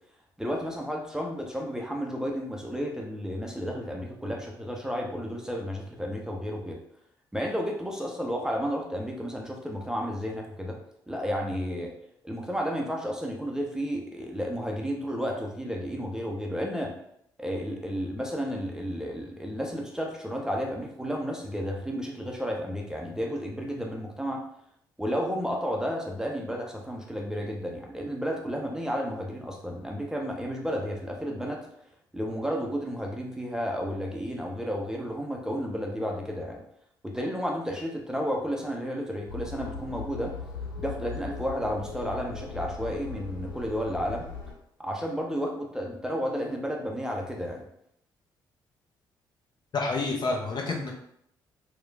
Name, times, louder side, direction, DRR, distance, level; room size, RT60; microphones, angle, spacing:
voice 1, 0.4-6.8 7.3-10.8 11.1-11.9 12.2-16.9 17.4-24.4 25.0-31.7 32.1-36.6 37.0-40.3 40.8-44.3 44.8-47.6, equal, 5° right, 0 dB, 0.5 m, -32 dB
sound 1, 39.3-44.5, left 4 dB, 90° left, 0.4 m, -39 dB
voice 2, 49.7-50.9, left 3 dB, 40° left, 1 dB, 0.6 m, -28 dB
3.0 x 2.0 x 2.6 m, 0.72 s
figure-of-eight pair, 40°, 11 cm